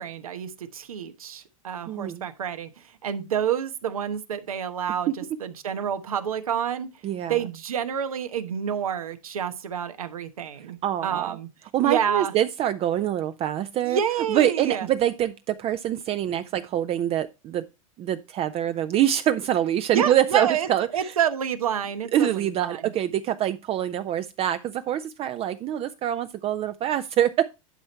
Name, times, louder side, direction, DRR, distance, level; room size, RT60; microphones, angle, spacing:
voice 1, 0.0-2.7 3.0-5.1 5.4-6.9 7.3-11.5 11.8-12.3 13.8-14.9 19.9-20.7 20.9-22.9, right 8 dB, 85° right, 1.1 m, -28 dB
voice 2, 1.9-2.3 5.1-5.2 7.0-7.4 10.8-11.3 11.7-14.0 14.3-17.7 18.0-21.1 22.1-27.5, right 11 dB, 35° right, 0.5 m, -25 dB
11.0 x 4.5 x 4.2 m
hypercardioid pair, 100°, 18 cm